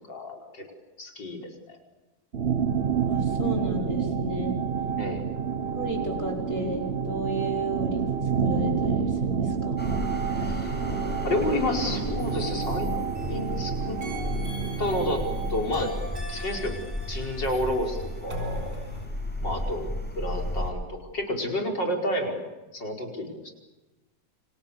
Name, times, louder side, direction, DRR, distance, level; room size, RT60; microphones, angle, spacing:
voice 1, 0.1-0.6 1.0-1.8 5.0-5.3 10.4-10.8 11.2-12.9 13.3-14.0 14.8-15.2 15.5-15.9 16.3-16.8 17.1-18.8 19.4-19.9 20.2-23.5, left 1 dB, 75° left, 3 dB, 5.8 m, -30 dB
sound 1, 2.3-15.7, right 6 dB, 40° right, 1.2 m, -29 dB
voice 2, 3.1-4.6 5.8-8.0 8.4-9.8, right 1 dB, 40° left, 1 dB, 6.0 m, -32 dB
sound 2, 9.8-20.7, equal, 5° left, 6.7 m, -34 dB
sound 3, 12.2-13.6 14.0-19.1, left 1 dB, 70° right, 6.8 m, -42 dB
29.5 x 27.0 x 7.2 m, 1.1 s
omnidirectional pair, 1.9 m